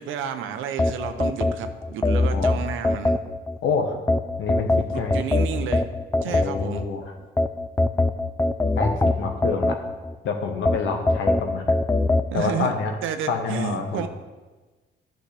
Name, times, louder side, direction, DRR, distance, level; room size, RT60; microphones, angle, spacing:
voice 1, 0.0-3.2 4.9-5.9 6.2-6.9 12.3-12.7 13.0-14.1, right 8 dB, 85° right, 8 dB, 0.7 m, -31 dB
sound 1, 0.8-3.6 4.1-6.9 7.4-10.2 10.7-12.3, left 2 dB, 15° left, 0.4 m, -22 dB
voice 2, 3.6-4.0 4.4-5.2 6.2-7.1 8.7-9.8 10.2-11.8 12.3-13.0 13.3-14.1, left 5 dB, 80° left, 4 dB, 1.2 m, -27 dB
11.5 x 6.5 x 3.4 m, 1.3 s
cardioid pair, 90°, 20 cm